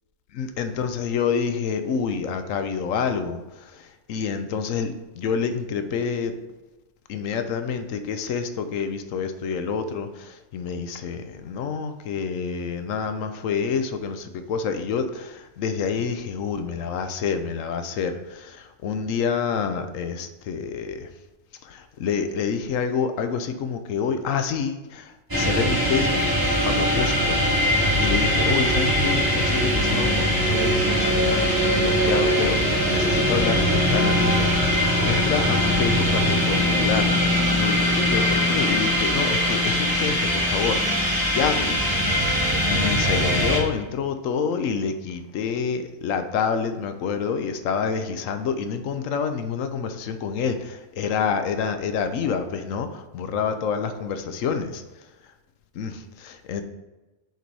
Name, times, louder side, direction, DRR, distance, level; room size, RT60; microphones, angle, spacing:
voice 1, 0.3-6.3 7.1-21.1 21.6-27.4 28.0-37.1 37.5-41.9 42.7-54.8 55.7-56.6, left 6 dB, 80° left, 8 dB, 1.0 m, -28 dB
sound 1, 25.3-43.6, equal, 15° right, 1.5 m, -21 dB
6.7 x 4.0 x 4.6 m, 1.1 s
omnidirectional pair, 1.3 m